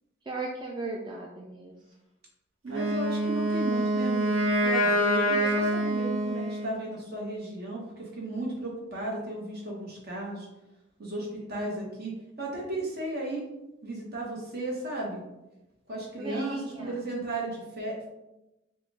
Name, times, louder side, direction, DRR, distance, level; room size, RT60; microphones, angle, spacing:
voice 1, 0.3-1.7 16.2-17.0, right 3 dB, 25° right, -1 dB, 0.4 m, -36 dB
voice 2, 2.6-10.5 11.0-13.5 13.8-15.2 15.9-18.1, right 2 dB, 55° right, -2 dB, 1.3 m, -35 dB
Wind instrument woodwind instrument, 2.7-6.8, equal, 85° right, 1.3 m, -26 dB
4.9 x 2.4 x 3.3 m, 0.95 s
head